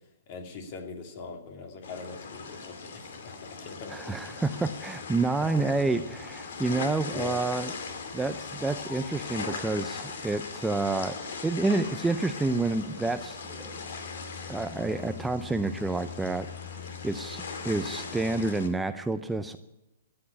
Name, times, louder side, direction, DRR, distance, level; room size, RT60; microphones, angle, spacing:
voice 1, 0.3-4.2 5.4-5.6 6.1-6.2 7.1-7.4, left 4 dB, 40° left, 5 dB, 2.6 m, -42 dB
sound 1, 1.8-18.7, left 5 dB, 70° left, 2.4 m, -39 dB
voice 2, 3.9-7.7 8.1-11.2 11.4-13.8 14.5-16.5 17.0-19.6, right 3 dB, 5° right, 9 dB, 0.5 m, -29 dB
13.5 x 8.7 x 10.0 m, 0.95 s
hypercardioid pair, 145°, 0 cm